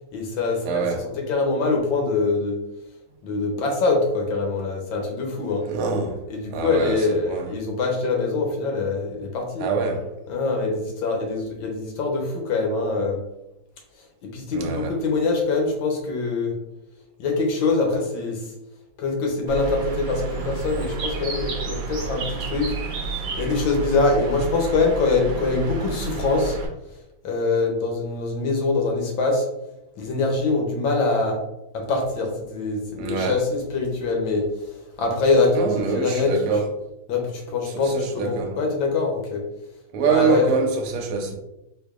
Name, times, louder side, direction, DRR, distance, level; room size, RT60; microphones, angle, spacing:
voice 1, 0.1-2.6 3.2-5.6 6.3-9.7 10.3-13.2 14.3-16.5 17.2-18.4 19.0-22.7 23.1-26.6 27.2-29.5 30.0-31.4 31.7-36.4 37.1-39.4 40.0-40.5, left 3 dB, 70° left, 1.3 m, -24 dB
voice 2, 0.6-1.0 5.7-6.2 6.5-7.5 9.6-10.0 14.5-14.9 33.0-33.4 35.5-36.6 37.9-38.5 39.9-41.4, right 5 dB, 80° right, 1.5 m, -25 dB
Bird, 19.5-26.7, right 5 dB, 65° right, 1.1 m, -31 dB
4.6 x 2.6 x 2.3 m
omnidirectional pair, 2.4 m